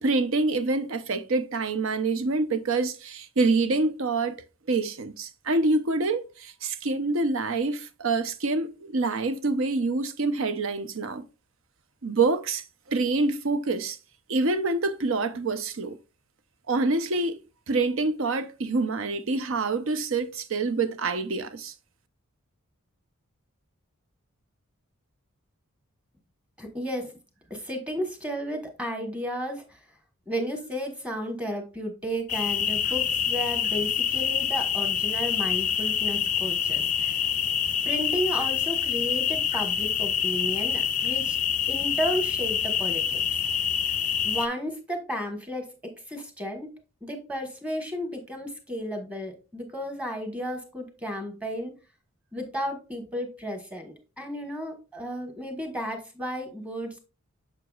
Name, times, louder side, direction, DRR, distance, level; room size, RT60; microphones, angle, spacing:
voice 1, 0.0-4.3 4.7-11.2 12.0-12.6 12.9-14.0 14.3-16.0 16.7-17.4 17.7-21.7, right 3 dB, 60° right, 0.7 m, -26 dB
voice 2, 26.6-27.2 27.5-29.8 30.3-37.2 37.8-41.4 41.7-43.2 44.2-46.7 47.0-51.8 52.3-57.0, equal, 5° right, 1.2 m, -33 dB
sound 1, 32.3-44.5, left 8 dB, 35° left, 0.4 m, -26 dB
6.8 x 6.6 x 2.4 m
head